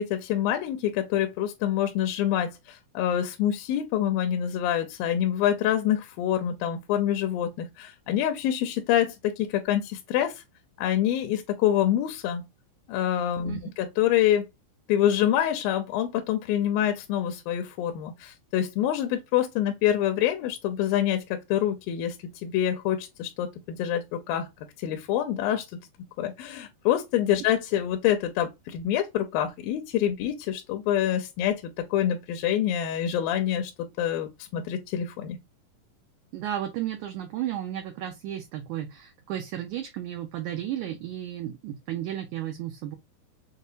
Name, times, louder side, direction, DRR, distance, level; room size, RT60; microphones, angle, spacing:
voice 1, 0.0-10.4 10.8-12.4 12.9-14.5 14.9-22.2 22.4-24.5 24.8-25.7 26.2-35.4, left 11 dB, 80° left, 2.3 m, -26 dB
voice 2, 36.3-43.0, right 11 dB, 80° right, 1.7 m, -33 dB
6.4 x 2.2 x 2.6 m
omnidirectional pair, 4.3 m